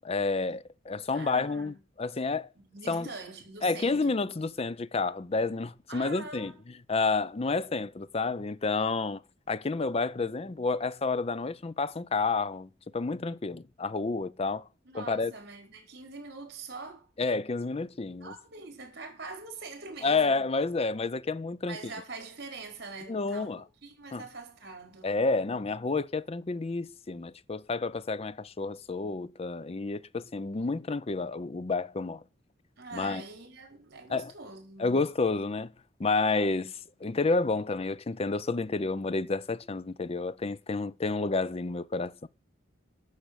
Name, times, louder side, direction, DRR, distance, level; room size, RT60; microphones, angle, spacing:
voice 1, 0.0-2.5 2.9-3.1 3.6-6.5 6.9-9.2 9.5-14.7 14.9-15.3 17.2-18.3 20.0-21.8 23.1-23.6 24.1-24.2 25.0-32.2 32.9-33.2 34.1-34.3 34.8-35.7 36.0-42.3, left 3 dB, 30° left, 0.5 m, -30 dB
voice 2, 1.1-1.8 2.6-4.2 5.9-6.6 14.8-17.1 18.2-20.4 21.6-25.2 32.8-35.0, right 3 dB, 55° right, 5.1 m, -44 dB
13.0 x 6.7 x 8.1 m
head